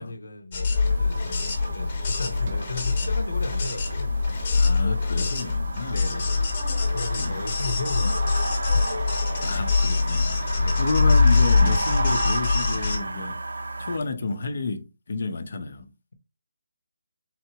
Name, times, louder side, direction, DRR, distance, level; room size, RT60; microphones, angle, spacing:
voice 1, 0.0-4.2 5.9-6.6 6.9-8.9 10.6-10.8, left 3 dB, 80° left, 1.0 m, -36 dB
sound 1, 0.5-13.0, left 4 dB, 25° left, 1.0 m, -24 dB
sound 2, 0.7-14.0, right 2 dB, 75° right, 0.7 m, -33 dB
Sliding door, 1.9-6.7 8.3-13.3, right 2 dB, 25° right, 0.4 m, -44 dB
voice 2, 4.5-6.2 7.2-7.4 8.0-8.1 9.4-15.9, left 3 dB, 40° left, 0.7 m, -31 dB
4.5 x 3.8 x 2.9 m
hypercardioid pair, 180°, 0 cm